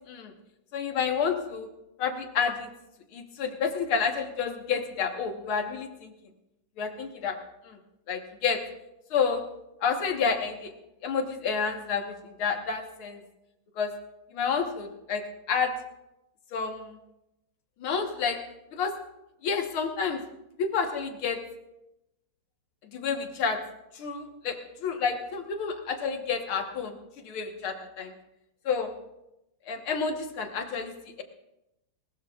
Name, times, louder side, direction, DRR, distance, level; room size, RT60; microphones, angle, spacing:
voice 1, 0.7-1.7 2.0-2.7 3.1-6.1 6.8-7.4 7.7-7.8 8.1-8.6 9.1-9.4 9.8-10.7 11.0-13.2 13.8-13.9 14.3-15.7 16.5-16.9 17.8-18.4 18.7-18.9 19.4-20.2 20.6-21.4 22.9-23.6 24.0-27.0 27.2-28.1 28.7-28.9 29.7-31.2, left 6 dB, 80° left, 5 dB, 2.2 m, -29 dB
20.0 x 19.5 x 2.4 m, 0.89 s
omnidirectional pair, 2.3 m